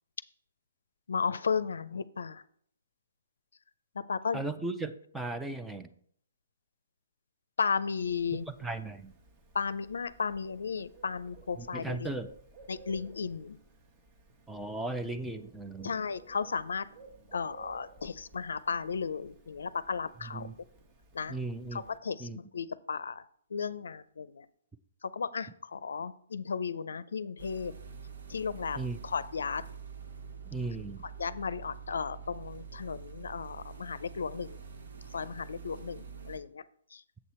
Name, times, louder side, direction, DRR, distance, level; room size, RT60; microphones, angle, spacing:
voice 1, 1.1-2.4 4.0-4.4 7.6-8.5 9.5-12.1 12.7-13.6 15.8-16.9 17.3-20.5 21.1-21.3 21.7-23.2 23.5-24.5 25.0-27.7 28.3-29.6 31.2-34.6 35.1-36.6 36.9-37.0, left 5 dB, 80° left, 16 dB, 0.5 m, -34 dB
voice 2, 4.3-5.9 8.6-9.1 11.6-12.3 14.5-16.0 20.2-20.5 21.3-21.8 22.2-22.4 28.8-29.0 30.4-31.0, right 2 dB, 5° right, 9 dB, 0.5 m, -36 dB
Bird, 8.0-22.0, right 3 dB, 25° right, 1.1 m, -57 dB
sound 1, 27.4-36.4, right 6 dB, 65° right, 1.3 m, -46 dB
7.3 x 6.7 x 4.3 m, 0.62 s
hypercardioid pair, 150°, 0 cm